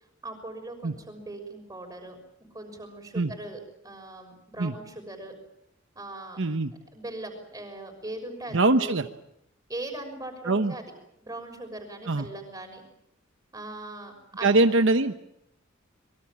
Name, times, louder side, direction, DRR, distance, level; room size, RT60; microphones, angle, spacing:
voice 1, 0.2-5.3 5.9-6.4 6.9-9.0 9.7-10.9 11.2-12.8 13.5-14.5, right 2 dB, 15° right, 4 dB, 6.3 m, -40 dB
voice 2, 6.4-6.7 8.5-9.1 10.5-10.7 12.1-12.3 14.4-15.1, right 2 dB, 65° right, 8 dB, 1.0 m, -22 dB
25.5 x 23.0 x 7.5 m, 0.78 s
head